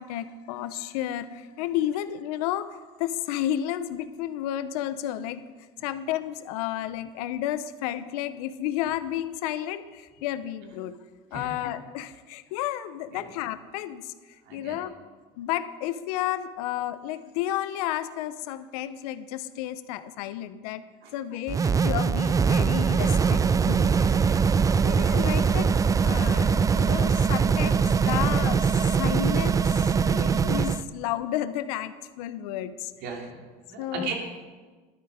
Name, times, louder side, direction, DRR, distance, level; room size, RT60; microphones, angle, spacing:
voice 1, 0.0-2.7 3.0-5.4 5.8-11.0 11.3-14.1 14.5-14.9 15.4-20.8 21.1-24.4 24.8-25.7 26.0-28.6 28.9-29.6 30.0-32.9 33.8-34.1, left 12 dB, 85° left, 12 dB, 0.7 m, -32 dB
voice 2, 11.3-11.7 13.1-13.3 14.4-14.8 21.0-21.1 30.1-30.5 33.0-34.1, right 4 dB, 65° right, 1 dB, 2.8 m, -37 dB
sound 1, 21.5-30.8, right 6 dB, 20° right, 0.3 m, -22 dB
12.0 x 10.0 x 4.9 m, 1.4 s
supercardioid pair, 105°, 19 cm